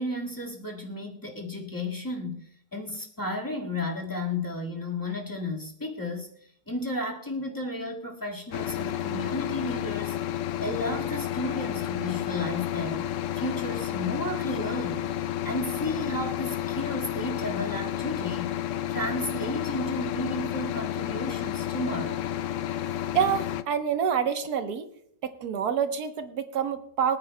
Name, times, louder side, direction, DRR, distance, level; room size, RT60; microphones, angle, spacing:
voice 1, 0.0-10.2 10.6-22.2, left 1 dB, 10° left, -1 dB, 1.8 m, -33 dB
sound 1, 8.5-23.6, left 11 dB, 80° left, 0.6 m, -31 dB
voice 2, 23.1-24.9 25.2-27.2, right 8 dB, 65° right, 8 dB, 1.5 m, -27 dB
25.0 x 9.4 x 2.2 m, 0.70 s
omnidirectional pair, 1.9 m